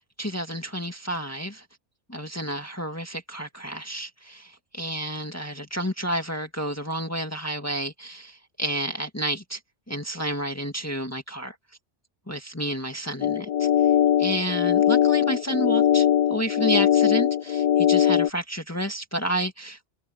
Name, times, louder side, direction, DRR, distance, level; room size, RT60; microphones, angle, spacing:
voice 1, 0.2-1.7 2.1-9.6 9.9-11.6 12.3-13.7 14.2-19.9, right 1 dB, 15° left, 1.9 m, -30 dB
sound 1, 13.2-18.3, left 10 dB, 55° left, 0.4 m, -21 dB
omnidirectional pair, 1.1 m